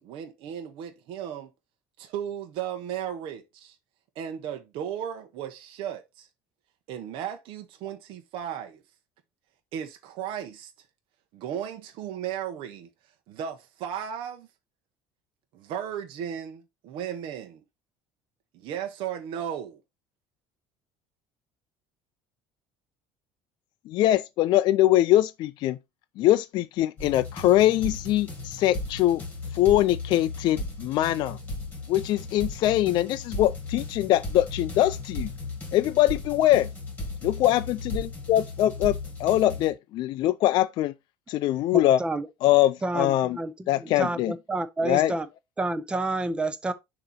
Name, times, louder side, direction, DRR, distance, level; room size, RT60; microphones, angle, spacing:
voice 1, 0.0-1.5 2.0-3.8 4.2-6.3 6.9-8.8 9.7-10.7 11.3-12.9 13.3-14.5 15.5-17.6 18.5-19.8, right 9 dB, 55° right, 0.9 m, -35 dB
voice 2, 23.9-25.8 26.2-29.2 29.5-31.4 31.9-35.3 35.7-36.7 37.2-37.6 37.9-38.0 38.3-40.9 41.3-42.0 42.4-43.4 43.7-44.3 44.9-45.1, left 14 dB, 45° left, 0.4 m, -22 dB
sound 1, 27.0-39.7, left 2 dB, 15° left, 2.1 m, -36 dB
voice 3, 41.7-42.3 42.8-45.3 45.6-46.7, right 2 dB, 10° right, 0.5 m, -29 dB
6.6 x 2.9 x 5.6 m
cardioid pair, 180°, 11 cm